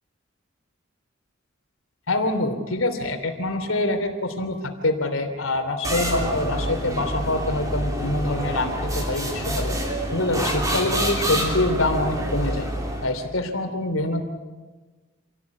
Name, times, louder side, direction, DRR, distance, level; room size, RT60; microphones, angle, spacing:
voice 1, 2.1-8.7 9.1-9.8 10.1-12.7 13.0-14.2, left 2 dB, 80° left, 6 dB, 3.1 m, -25 dB
sound 1, 5.8-13.2, equal, 15° right, 3.5 m, -27 dB
27.0 x 17.0 x 8.4 m, 1.3 s
head